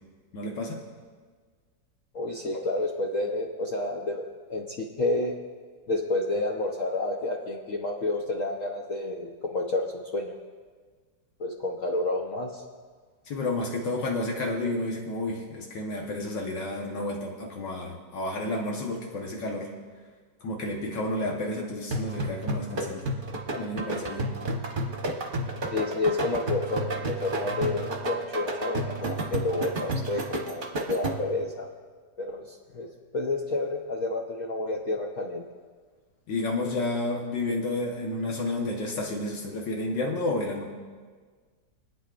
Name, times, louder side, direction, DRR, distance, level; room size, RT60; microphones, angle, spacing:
voice 1, 0.3-0.8 13.3-19.7 20.4-23.1 23.5-24.3 36.3-40.7, left 2 dB, 85° left, -1 dB, 1.9 m, -31 dB
voice 2, 2.1-5.4 5.9-10.3 11.4-12.6 25.7-31.7 32.2-35.4, left 2 dB, 55° left, -1 dB, 1.1 m, -30 dB
sound 1, 21.9-31.4, right 1 dB, 35° right, 1.0 m, -31 dB
27.5 x 9.3 x 2.5 m, 1.5 s
omnidirectional pair, 1.9 m